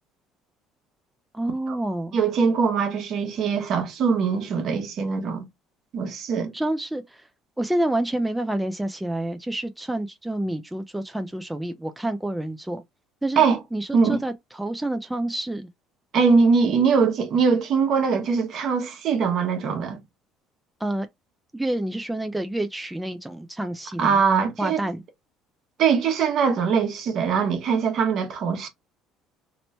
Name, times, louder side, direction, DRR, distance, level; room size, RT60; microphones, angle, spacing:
voice 1, 1.3-2.2 6.5-7.2 7.6-12.8 13.2-13.4 13.7-15.7 20.8-21.1 21.5-24.2 24.6-25.0, right 1 dB, 5° right, 0.4 m, -28 dB
voice 2, 2.1-5.4 5.9-6.5 13.4-13.6 13.9-14.2 16.1-20.0 24.0-24.8 25.8-28.7, right 5 dB, 55° right, 1.0 m, -22 dB
3.0 x 2.0 x 4.1 m
cardioid pair, 100°, 0 cm